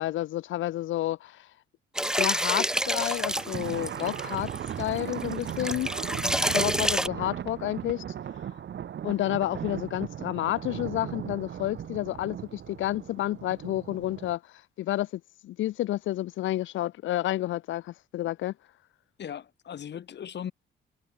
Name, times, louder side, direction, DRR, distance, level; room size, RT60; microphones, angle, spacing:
voice 1, 0.0-1.5 2.2-4.5 4.8-5.9 6.5-8.0 9.0-18.5, left 14 dB, 75° left, 0.7 m, -30 dB
sound 1, 2.0-7.1, equal, 5° right, 1.9 m, -28 dB
Thunder, 2.6-14.4, right 9 dB, 65° right, 6.6 m, -37 dB
voice 2, 5.4-5.7 19.2-20.5, left 9 dB, 60° left, 7.7 m, -38 dB
cardioid pair, 90°, 20 cm